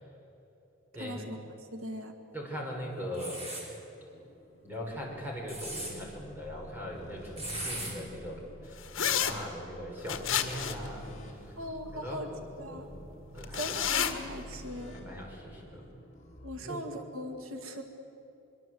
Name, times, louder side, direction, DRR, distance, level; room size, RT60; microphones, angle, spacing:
voice 1, 0.9-1.4 1.7-2.1 11.6-12.3 12.6-12.8 13.5-14.9 16.4-17.8, equal, 85° right, 5 dB, 2.1 m, -39 dB
voice 2, 2.3-3.4 4.6-11.5 11.9-12.4 12.7-13.0 13.3-13.6 14.9-15.9 16.6-16.8, equal, 10° right, -1 dB, 5.3 m, -40 dB
sound 1, 3.1-3.7 5.3-5.9 7.4-7.9, right 1 dB, 30° right, 5.9 m, -38 dB
sound 2, 3.9-16.6, equal, 35° left, 3.5 m, -50 dB
sound 3, 8.9-9.3 10.1-10.9 13.4-14.1, left 9 dB, 70° left, 1.8 m, -29 dB
24.0 x 23.0 x 7.8 m, 2.8 s
head